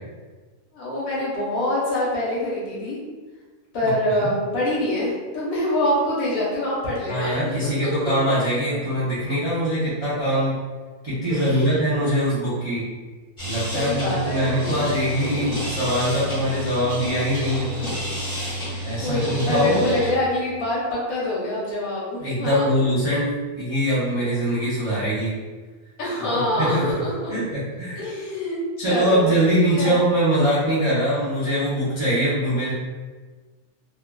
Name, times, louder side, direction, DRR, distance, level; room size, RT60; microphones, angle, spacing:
voice 1, 0.7-3.0 3.7-7.9 11.3-11.7 13.7-14.5 18.4-22.7 26.0-27.3 28.0-29.9, left 1 dB, 65° left, -7 dB, 1.2 m, -25 dB
voice 2, 7.1-10.6 11.0-12.8 13.5-17.7 18.8-19.8 22.2-23.3 23.6-25.3 26.2-26.3 26.6-26.8 27.3-28.0 28.8-32.7, equal, 40° right, -10 dB, 0.4 m, -22 dB
sound 1, 13.4-20.1, equal, 30° left, 1.5 m, -29 dB
3.1 x 2.3 x 2.2 m, 1.4 s
omnidirectional pair, 1.6 m